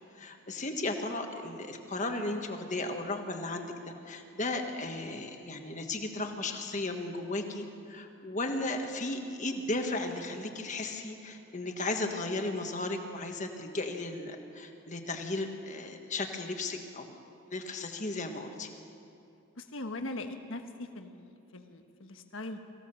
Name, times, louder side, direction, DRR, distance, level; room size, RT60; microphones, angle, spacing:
voice 1, 0.1-17.2 17.5-18.7, left 2 dB, 35° left, 4 dB, 1.5 m, -35 dB
voice 2, 19.6-22.6, left 2 dB, 65° left, 6 dB, 1.3 m, -41 dB
24.0 x 16.0 x 6.9 m, 2.7 s
head